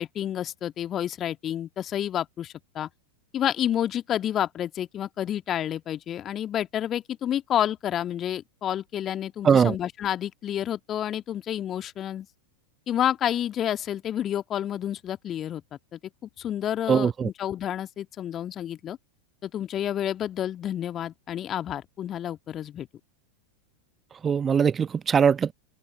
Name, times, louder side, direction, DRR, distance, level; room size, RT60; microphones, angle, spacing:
voice 1, 0.0-2.9 3.3-12.3 12.9-15.6 15.9-19.0 19.4-22.9, left 10 dB, 30° left, 1.7 m, -29 dB
voice 2, 9.4-9.7 16.9-17.3 24.2-25.5, right 7 dB, 20° right, 1.1 m, -21 dB
open air
figure-of-eight pair, 90°, 0 cm